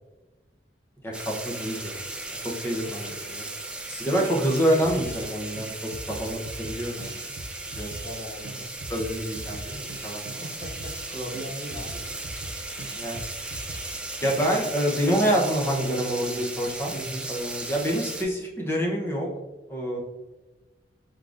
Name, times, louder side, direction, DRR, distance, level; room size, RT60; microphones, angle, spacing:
voice 1, 1.0-2.0 2.4-3.5 4.0-7.3 7.7-7.9 8.9-10.4 12.9-13.2 14.2-16.9 17.3-19.3 19.7-20.0, equal, 15° left, -2 dB, 0.8 m, -27 dB
sound 1, 1.1-18.2, right 2 dB, 5° right, 0.4 m, -36 dB
voice 2, 3.9-4.3 8.0-8.7 10.3-12.1 12.8-13.0 16.9-17.2, equal, 40° left, -5 dB, 1.3 m, -38 dB
sound 2, 4.8-5.3 5.6-8.2 8.4-8.6 8.8-11.1 11.3-13.9 14.2-14.3, right 1 dB, 80° right, 0.6 m, -41 dB
4.7 x 3.7 x 2.5 m, 1.1 s
head